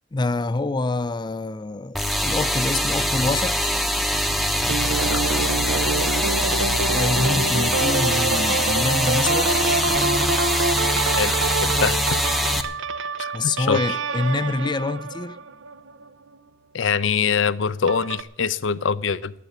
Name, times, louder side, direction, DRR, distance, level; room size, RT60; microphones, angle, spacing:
voice 1, 0.1-3.7 6.9-9.6 13.3-15.4, left 2 dB, 20° left, 0.4 m, -26 dB
sound 1, 1.9-12.6, equal, ahead, 0.8 m, -23 dB
sound 2, 4.7-16.1 17.9-18.2, right 3 dB, 75° right, 0.7 m, -27 dB
voice 2, 11.2-12.2 13.2-13.8 16.7-19.3, left 6 dB, 70° left, 0.6 m, -24 dB
12.0 x 9.3 x 9.3 m
head